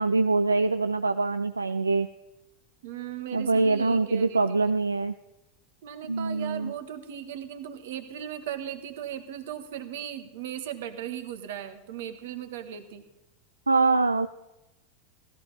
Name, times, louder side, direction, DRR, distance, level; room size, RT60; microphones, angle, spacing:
voice 1, 0.0-2.1 3.3-5.1 6.1-6.7 13.7-14.3, right 3 dB, 85° right, 10 dB, 0.4 m, -24 dB
voice 2, 2.8-4.7 5.8-13.1, right 10 dB, 60° right, 9 dB, 1.5 m, -37 dB
16.5 x 14.0 x 4.2 m, 0.96 s
figure-of-eight pair, 85°, 0 cm